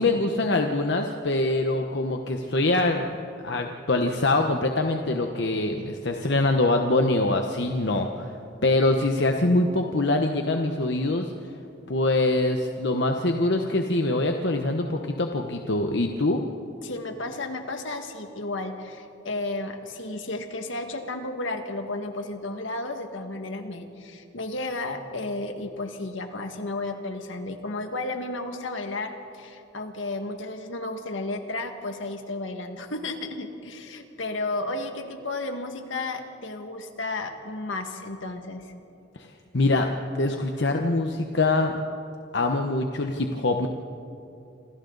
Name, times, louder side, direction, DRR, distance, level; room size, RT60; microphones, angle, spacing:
voice 1, 0.0-3.1 3.4-8.3 8.6-11.3 11.9-16.4 39.2-39.3 39.5-41.7 42.3-43.7, left 2 dB, 60° left, 4 dB, 1.0 m, -24 dB
voice 2, 16.8-38.7, left 2 dB, 75° left, 5 dB, 1.9 m, -33 dB
27.5 x 26.5 x 4.0 m, 2.7 s
head